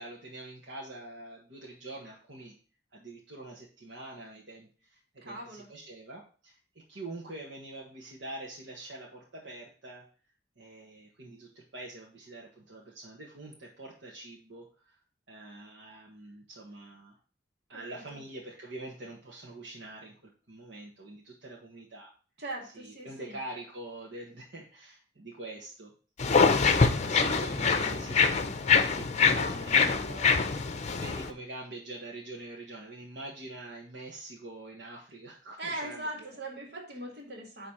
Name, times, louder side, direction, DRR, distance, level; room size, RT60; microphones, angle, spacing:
voice 1, 0.0-2.5 2.9-6.6 6.9-10.0 10.6-15.0 15.3-17.2 17.7-22.1 22.6-25.9 26.4-30.1 30.9-36.4, right 2 dB, 85° right, -3 dB, 1.4 m, -45 dB
voice 2, 5.2-5.7 17.7-18.2 22.4-23.4 29.3-30.5 35.6-37.7, right 1 dB, 65° right, -1 dB, 2.2 m, -40 dB
sound 1, 26.2-31.3, left 5 dB, 40° left, 0.6 m, -25 dB
9.7 x 3.3 x 4.3 m, 0.38 s
head